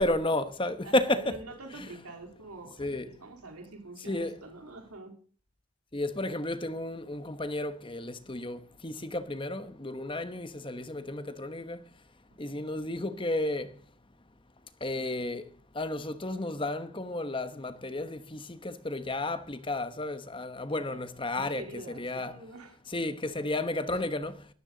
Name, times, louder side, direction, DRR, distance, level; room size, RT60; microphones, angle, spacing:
voice 1, 0.0-1.3 2.8-3.1 4.1-4.4 5.9-11.8 12.4-13.8 14.8-22.4 22.9-24.5, left 1 dB, 20° left, 1.1 m, -32 dB
voice 2, 0.8-5.2 12.4-12.8 20.7-21.0 21.3-22.8, right 2 dB, 90° right, 3.7 m, -46 dB
18.0 x 14.0 x 4.0 m
head